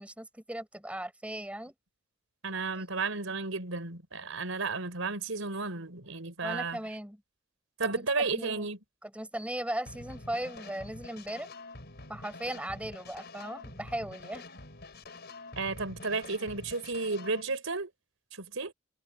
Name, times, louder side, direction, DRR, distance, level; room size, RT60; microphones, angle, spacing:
voice 1, 0.0-1.7 2.8-2.9 6.4-7.2 7.8-8.1 8.3-8.7 9.0-11.5 12.1-14.4, right 1 dB, 5° right, 4.6 m, -37 dB
voice 2, 2.4-6.8 7.8-8.8 15.6-17.9 18.4-18.7, right 3 dB, 85° right, 4.3 m, -33 dB
sound 1, 9.9-17.4, left 2 dB, 55° left, 4.7 m, -47 dB
head